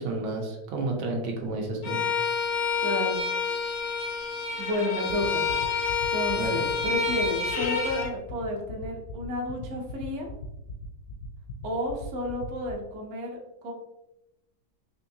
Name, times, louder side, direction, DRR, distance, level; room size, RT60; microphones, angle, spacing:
voice 1, 0.0-2.0 6.4-6.6, right 2 dB, 80° right, 1 dB, 1.6 m, -31 dB
Bowed string instrument, 1.8-8.1, left 5 dB, 90° left, 1.6 m, -28 dB
voice 2, 2.8-3.2 4.6-5.5 6.1-10.3 11.6-13.4 13.6-13.7, left 1 dB, 60° right, 0 dB, 0.7 m, -31 dB
sound 1, 5.1-12.7, left 6 dB, 75° left, 1.1 m, -39 dB
4.4 x 2.7 x 2.7 m, 0.92 s
omnidirectional pair, 2.2 m